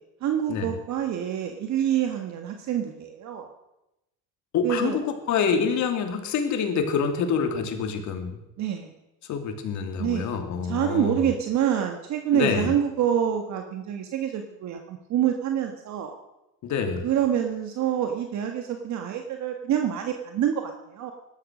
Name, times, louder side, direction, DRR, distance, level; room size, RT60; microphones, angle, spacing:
voice 1, 0.2-3.5 4.6-5.0 8.6-8.9 10.0-10.3 10.6-16.1 17.0-21.1, right 9 dB, 55° right, 5 dB, 1.6 m, -26 dB
voice 2, 4.5-8.3 9.3-11.2 12.3-12.7 16.6-17.1, left 6 dB, 60° left, 5 dB, 2.9 m, -26 dB
17.0 x 12.5 x 6.3 m, 0.93 s
cardioid pair, 110°, 33 cm